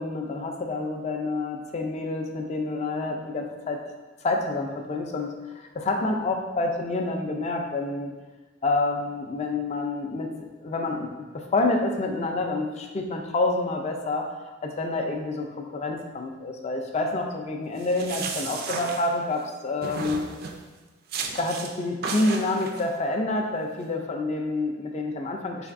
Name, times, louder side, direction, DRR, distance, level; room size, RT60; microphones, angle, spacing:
voice 1, 0.0-3.8 4.2-8.2 8.6-10.3 10.6-14.3 14.6-20.3 21.2-25.7, left 2 dB, 35° left, 3 dB, 0.4 m, -28 dB
sound 1, 17.8-19.5 19.8-20.6 21.1-21.7 22.0-22.9, right 4 dB, 50° right, 0.3 m, -34 dB
3.9 x 3.3 x 2.5 m, 1.2 s
head